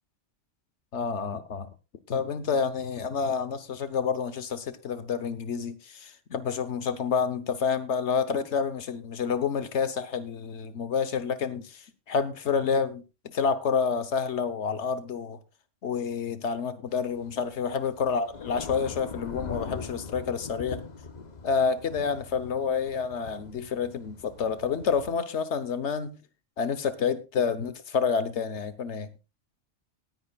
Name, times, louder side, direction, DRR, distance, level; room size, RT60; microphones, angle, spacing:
voice 1, 0.9-1.7 2.1-15.4 15.8-20.8 21.4-26.2 26.6-29.1, left 6 dB, 70° left, 1.3 m, -29 dB
Thunder / Rain, 16.9-25.1, left 5 dB, 40° left, 0.9 m, -42 dB
18.5 x 9.9 x 2.3 m
omnidirectional pair, 1.2 m